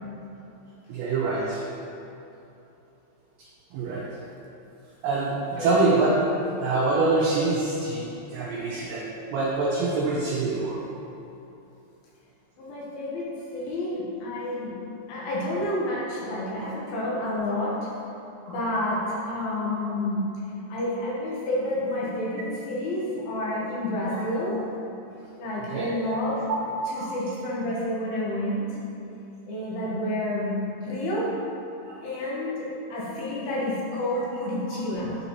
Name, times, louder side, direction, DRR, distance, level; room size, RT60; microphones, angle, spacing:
voice 1, 0.9-1.7 3.4-4.2 5.0-10.9 16.6-16.7 18.4-18.6 24.1-24.3 25.7-25.9 26.9-27.2 31.8-32.1 34.2-34.3 34.7-34.8, right 3 dB, 85° right, -5 dB, 1.9 m, -26 dB
voice 2, 12.6-14.8 15.1-17.9 18.5-20.2 20.7-24.6 25.4-26.5 26.9-28.7 29.5-31.3 32.0-35.2, left 1 dB, 75° left, -6 dB, 2.9 m, -29 dB
9.0 x 4.0 x 3.0 m, 2.8 s
omnidirectional pair, 4.6 m